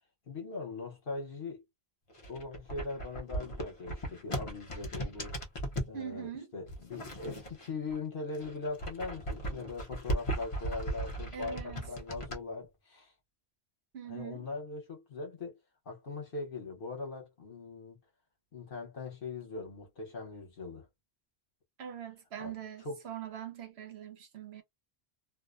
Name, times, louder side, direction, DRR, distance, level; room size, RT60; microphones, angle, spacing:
voice 1, 0.3-1.6 2.3-5.4 5.9-13.1 14.1-15.6 15.9-18.0 18.5-20.9 22.4-22.5 22.8-23.0, left 3 dB, 60° left, 1.0 m, -41 dB
sound 1, 2.1-6.0 6.7-8.0 8.3-12.4, right 1 dB, 35° left, 0.6 m, -37 dB
voice 2, 5.9-6.5 11.3-11.9 13.9-14.5 21.8-24.6, right 9 dB, 80° right, 1.0 m, -42 dB
2.5 x 2.0 x 2.4 m
omnidirectional pair, 1.1 m